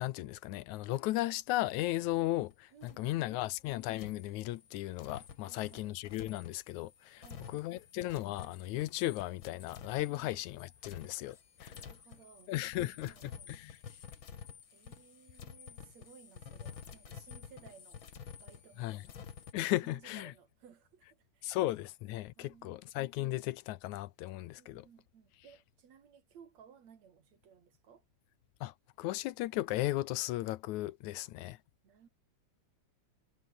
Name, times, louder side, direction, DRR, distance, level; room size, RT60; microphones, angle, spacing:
voice 1, 0.0-7.2 7.5-11.7 12.5-13.1 13.6-13.8 18.8-19.0 19.5-20.3 21.4-24.9 28.6-31.6, left 16 dB, 85° left, 2.1 m, -36 dB
sound 1, 1.8-2.5 2.8-3.1 3.9-19.5, left 7 dB, 45° left, 2.4 m, -51 dB
voice 2, 2.7-3.6 5.4-6.0 7.2-7.8 10.1-10.3 10.8-11.1 11.7-13.5 14.7-18.1 18.4-19.2 19.8-21.6 22.4-22.8 24.6-28.1 31.2-31.3 31.8-32.1, right 7 dB, 65° right, 3.5 m, -59 dB
omnidirectional pair, 3.4 m